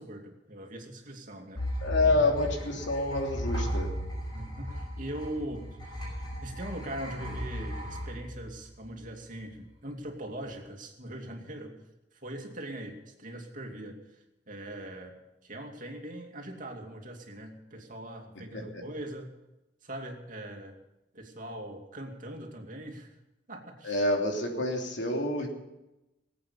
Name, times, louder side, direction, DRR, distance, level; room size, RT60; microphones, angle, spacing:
voice 1, 0.0-1.6 2.0-2.3 4.3-11.8 12.1-19.3 19.8-20.8 21.1-23.2 23.5-24.0, right 1 dB, 45° right, 2 dB, 2.5 m, -41 dB
sound 1, 1.5-9.1, equal, 25° left, 5.6 m, -36 dB
voice 2, 1.8-3.9 18.7-18.8 23.8-25.5, left 2 dB, 80° left, 1 dB, 3.1 m, -27 dB
19.5 x 8.6 x 6.9 m, 0.97 s
head